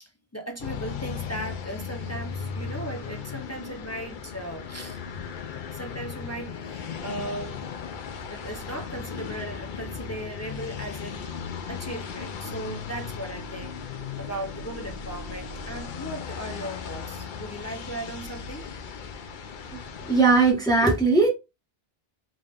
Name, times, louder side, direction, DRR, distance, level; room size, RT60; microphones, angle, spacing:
voice 1, 0.0-5.0 5.7-11.2 11.7-13.7 14.2-18.6, right 1 dB, 25° left, 0.3 m, -37 dB
sound 1, 0.6-20.5, left 6 dB, 55° left, 0.7 m, -37 dB
voice 2, 20.1-21.3, right 3 dB, 5° left, 1.0 m, -19 dB
3.7 x 2.4 x 3.3 m
omnidirectional pair, 1.1 m